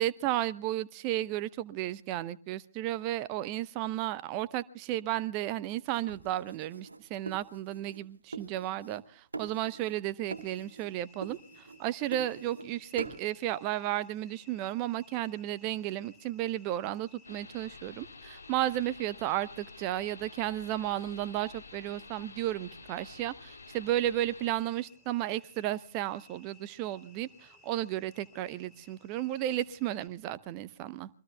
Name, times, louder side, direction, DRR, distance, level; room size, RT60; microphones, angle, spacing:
voice 1, 0.0-11.4 11.8-31.1, right 13 dB, 30° right, 16 dB, 0.7 m, -33 dB
sound 1, 6.1-8.0 8.3-9.0 9.3-10.0 10.3-10.9 11.2-12.7 13.0-13.2, right 4 dB, 75° right, 1.7 m, -43 dB
sound 2, 10.3-30.1, left 3 dB, 10° left, 3.2 m, -60 dB
sound 3, 17.2-24.6, left 3 dB, 75° left, 2.5 m, -50 dB
27.5 x 22.5 x 2.3 m, 0.43 s
figure-of-eight pair, 120°, 0 cm